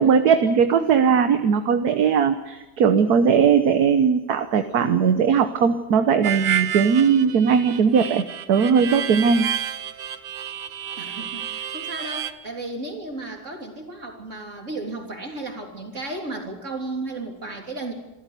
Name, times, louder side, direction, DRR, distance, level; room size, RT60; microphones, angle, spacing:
voice 1, 0.0-8.2 8.5-9.5, right 6 dB, 65° right, 8 dB, 1.5 m, -19 dB
Harmonica, 6.2-12.3, right 10 dB, 85° right, 1.6 m, -30 dB
voice 2, 11.0-17.9, right 2 dB, 45° right, 2 dB, 3.8 m, -34 dB
27.0 x 13.5 x 8.2 m, 1.0 s
omnidirectional pair, 1.8 m